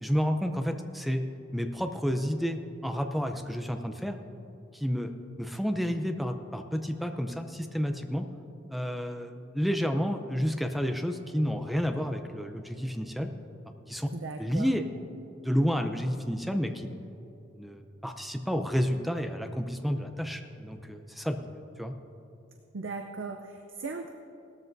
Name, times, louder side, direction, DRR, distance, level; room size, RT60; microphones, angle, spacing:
voice 1, 0.0-1.2 1.5-4.2 4.7-5.1 5.4-8.3 8.7-13.3 13.9-14.1 14.4-14.8 15.4-16.9 17.6-22.0, equal, ahead, 6 dB, 0.6 m, -30 dB
voice 2, 14.1-14.7 22.7-24.1, right 4 dB, 75° right, 5 dB, 0.6 m, -38 dB
17.5 x 13.5 x 2.7 m, 2.8 s
head